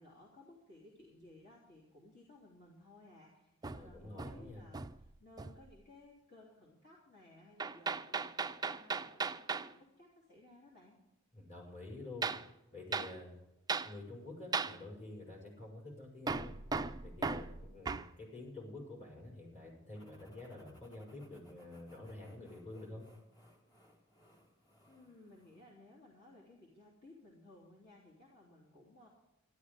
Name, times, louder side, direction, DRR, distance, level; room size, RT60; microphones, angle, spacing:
voice 1, 0.0-11.0 24.9-29.1, left 2 dB, 50° left, -5 dB, 3.3 m, -59 dB
Hammer, 3.6-5.1 5.4-5.7 7.6-9.7 12.2-12.5 12.9-13.1 13.7-13.9 14.5-14.8 16.3-18.1, right 4 dB, 20° right, 0.4 m, -37 dB
voice 2, 3.7-4.7 11.3-12.3 12.7-13.4 13.8-16.6 17.0-23.1, left 2 dB, 35° left, -1 dB, 5.6 m, -49 dB
sound 1, 19.9-25.8, equal, 20° left, 2.6 m, -65 dB
12.5 x 12.5 x 5.2 m, 0.93 s
head